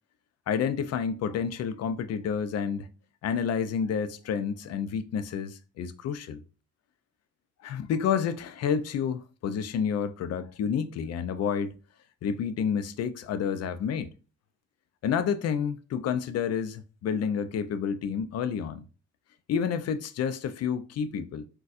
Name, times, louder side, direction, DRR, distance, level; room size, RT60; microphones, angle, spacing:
voice 1, 0.5-2.9 3.2-6.4 7.6-11.7 12.2-14.1 15.0-18.9 19.5-21.5, left 7 dB, 55° left, 0.4 m, -29 dB
4.0 x 2.2 x 2.4 m
cardioid pair, 90°, 30 cm